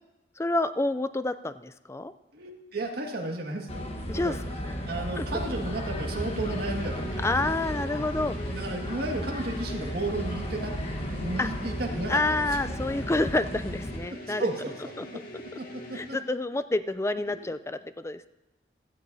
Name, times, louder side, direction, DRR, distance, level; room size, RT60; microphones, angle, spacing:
voice 1, 0.4-2.1 4.1-4.4 5.2-5.3 7.2-8.6 11.4-11.5 12.1-14.5 15.0-15.1 15.9-18.3, left 2 dB, 15° left, 13 dB, 0.4 m, -28 dB
voice 2, 2.3-3.8 4.1-4.4 4.9-7.3 8.5-12.2 14.4-15.1 15.6-16.2 17.3-17.5, right 2 dB, 55° right, 1 dB, 1.9 m, -34 dB
sound 1, 3.7-14.0, equal, 35° left, 1.3 m, -34 dB
sound 2, 5.9-16.3, equal, 50° left, 1.9 m, -44 dB
16.5 x 13.5 x 2.7 m, 0.99 s
head